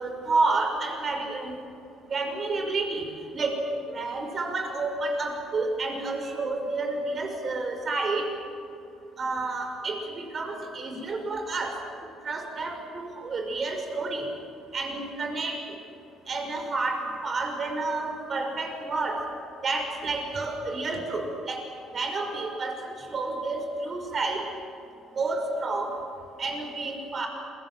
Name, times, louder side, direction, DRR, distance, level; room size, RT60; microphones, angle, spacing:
voice 1, 0.0-1.6 2.1-3.0 3.3-3.6 3.9-8.2 9.2-11.8 12.2-14.2 14.7-15.6 16.3-19.2 19.6-21.6 21.9-24.4 25.2-25.9 26.4-27.3, right 3 dB, 40° right, 3 dB, 5.8 m, -30 dB
27.5 x 23.0 x 7.7 m, 2.6 s
cardioid pair, 105°, 0 cm